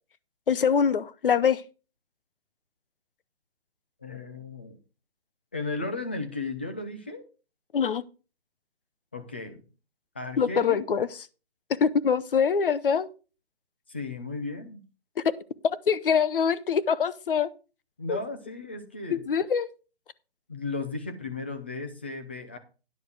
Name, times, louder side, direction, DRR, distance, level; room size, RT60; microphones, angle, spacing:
voice 1, 0.5-1.6 7.7-8.0 10.4-11.1 11.8-13.1 15.2-15.3 15.6-17.5 18.1-18.2 19.1-19.7, left 6 dB, 60° left, 15 dB, 0.8 m, -24 dB
voice 2, 4.0-4.8 5.5-7.2 9.1-9.6 10.1-10.8 13.9-14.8 18.0-19.2 20.5-22.6, left 3 dB, 10° left, 7 dB, 0.4 m, -35 dB
10.0 x 6.7 x 4.9 m, 0.34 s
figure-of-eight pair, 145°, 31 cm